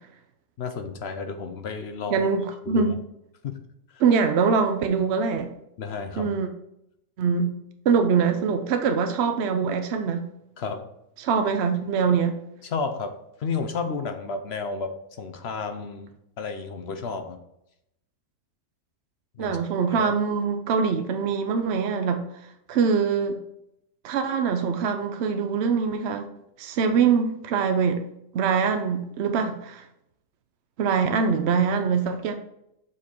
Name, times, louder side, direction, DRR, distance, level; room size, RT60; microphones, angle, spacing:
voice 1, 0.6-2.3 2.7-2.9 3.4-3.5 5.8-6.3 10.6-10.9 12.6-13.1 13.4-16.1 16.4-17.4 19.4-19.6 19.9-20.1, left 4 dB, 60° left, 0.6 m, -31 dB
voice 2, 2.1-2.9 4.0-5.5 6.2-6.5 7.2-7.5 7.9-10.2 11.2-12.4 19.4-22.2 22.7-23.4 24.0-26.3 26.6-28.0 28.3-29.8 30.8-32.3, right 6 dB, 65° right, 0.6 m, -23 dB
7.2 x 4.5 x 4.4 m
omnidirectional pair, 1.8 m